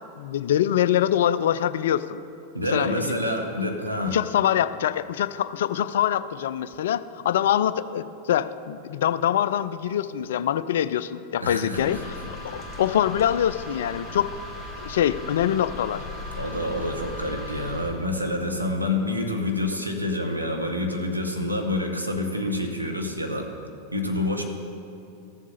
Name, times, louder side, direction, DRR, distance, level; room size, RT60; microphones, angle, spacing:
voice 1, 0.2-2.2 2.7-3.2 4.1-12.1 12.4-14.3 14.8-16.0, left 10 dB, 60° left, 15 dB, 0.3 m, -24 dB
voice 2, 2.5-4.2 11.4-12.0 16.3-23.5 23.9-24.4, left 1 dB, 85° right, 2 dB, 1.1 m, -27 dB
sound 1, 11.7-18.0, left 1 dB, 15° left, 2.0 m, -38 dB
14.0 x 7.3 x 4.1 m, 2.6 s
figure-of-eight pair, 90°, 0 cm